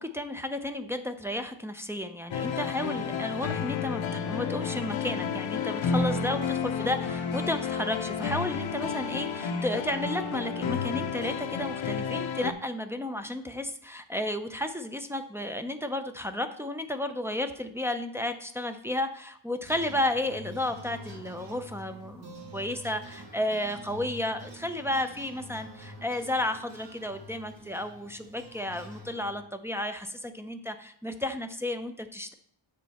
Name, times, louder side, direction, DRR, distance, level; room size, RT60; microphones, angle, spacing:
voice 1, 0.0-32.3, left 1 dB, 5° right, 5 dB, 0.5 m, -32 dB
sound 1, 2.3-12.5, left 6 dB, 75° left, 0.7 m, -31 dB
sound 2, 19.6-29.4, equal, 60° right, 1.9 m, -47 dB
7.6 x 5.1 x 4.2 m, 0.62 s
wide cardioid pair, 110°, 47 cm